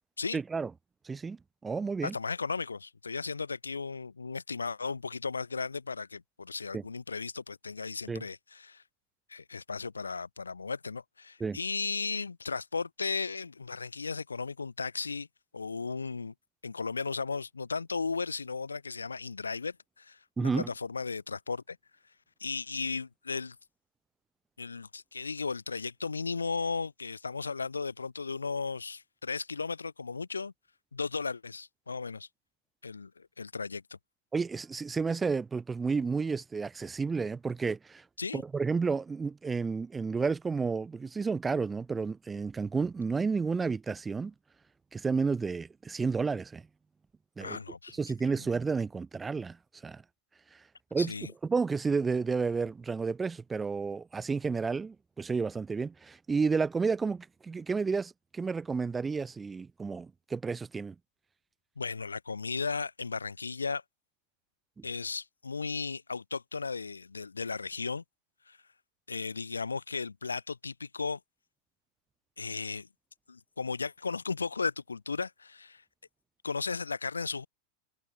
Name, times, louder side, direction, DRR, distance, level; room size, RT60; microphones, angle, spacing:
voice 1, 0.3-0.7 1.1-1.4 1.6-2.1 6.7-6.8 8.1-8.2 11.4-11.6 20.4-20.7 34.3-38.0 38.3-44.3 44.9-46.6 47.4-47.6 48.0-49.6 49.8-50.0 50.9-51.1 51.4-60.9 64.8-64.9, right 4 dB, 15° right, 0.3 m, -31 dB
voice 2, 2.0-8.8 9.3-15.3 15.5-16.3 16.6-21.8 22.4-23.6 24.6-30.5 30.9-32.3 32.8-33.8 38.2-38.4 47.4-48.0 51.0-51.3 61.8-63.8 64.8-68.0 68.5-68.6 69.1-71.2 72.4-72.9 73.3-75.8 76.4-77.5, left 4 dB, 75° left, 0.6 m, -35 dB
figure-of-eight pair, 90°, 0 cm